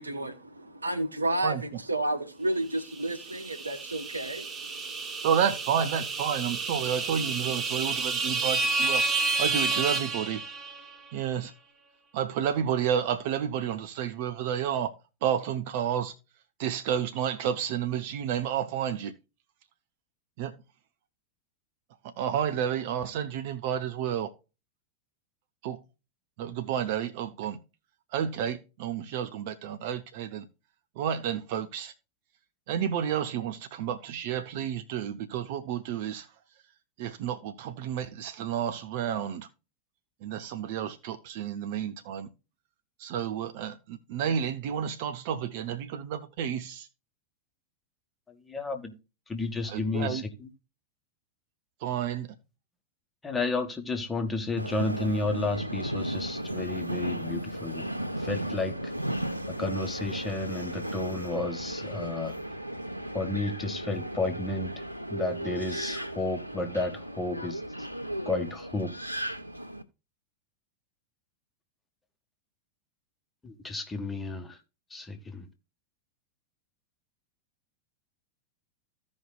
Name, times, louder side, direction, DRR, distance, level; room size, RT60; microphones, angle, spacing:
voice 1, 0.0-5.1, right 1 dB, 80° right, 1.1 m, -32 dB
sound 1, 2.9-11.0, right 3 dB, 20° right, 1.1 m, -30 dB
voice 2, 5.2-9.0 9.4-10.4 11.1-11.5 12.1-14.9 15.2-16.1 16.6-19.1 20.4-20.5 22.0-24.3 25.6-25.8 26.4-27.6 28.1-30.5 31.0-31.9 32.7-36.3 37.0-39.5 40.2-42.3 43.0-46.9 49.7-50.2 51.8-52.3, right 9 dB, 50° right, 0.8 m, -30 dB
voice 3, 48.5-48.9 49.3-50.2 53.2-57.9 58.2-58.8 59.5-62.3 63.1-64.7 65.1-67.6 68.3-68.9 73.4-74.6 74.9-75.5, left 2 dB, 10° left, 1.5 m, -32 dB
Subway metro underground, 54.6-69.8, right 1 dB, 90° left, 0.8 m, -35 dB
15.5 x 5.3 x 2.4 m
figure-of-eight pair, 90°, 0 cm